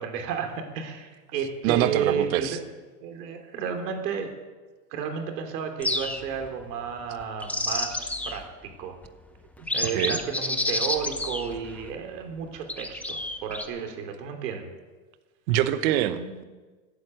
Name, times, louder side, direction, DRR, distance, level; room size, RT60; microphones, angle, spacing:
voice 1, 0.0-2.6 3.0-4.3 4.9-8.9 9.6-14.7 16.2-16.4, right 7 dB, 75° right, 4 dB, 3.3 m, -32 dB
voice 2, 1.6-2.6 9.9-10.2 15.5-16.4, right 12 dB, 60° right, 11 dB, 1.1 m, -24 dB
sound 1, 5.8-6.5 7.2-8.5 9.0-9.1 9.6-11.9 12.7-13.6, left 2 dB, 5° left, 0.6 m, -29 dB
15.0 x 9.6 x 8.0 m, 1.3 s
supercardioid pair, 135°, 49 cm